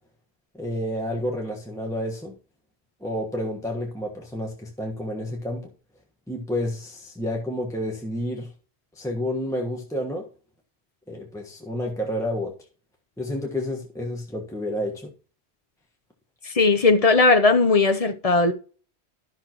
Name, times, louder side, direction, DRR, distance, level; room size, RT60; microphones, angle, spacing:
voice 1, 0.5-2.3 3.0-5.7 6.3-8.5 8.9-10.3 11.1-12.5 13.2-15.1, left 1 dB, 5° left, 1.3 m, -30 dB
voice 2, 16.4-18.5, left 3 dB, 40° left, 0.8 m, -18 dB
13.0 x 6.2 x 3.0 m
omnidirectional pair, 1.1 m